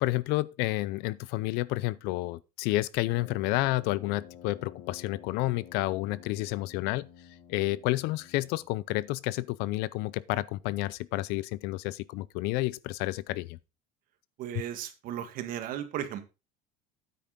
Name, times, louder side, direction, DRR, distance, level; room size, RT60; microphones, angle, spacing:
voice 1, 0.0-7.1 7.5-13.6, left 19 dB, 60° left, 0.5 m, -30 dB
Brass instrument, 3.0-8.9, left 9 dB, 85° left, 2.6 m, -51 dB
voice 2, 14.4-16.2, right 10 dB, 50° right, 1.7 m, -35 dB
9.4 x 8.3 x 3.8 m
cardioid pair, 155°, 18 cm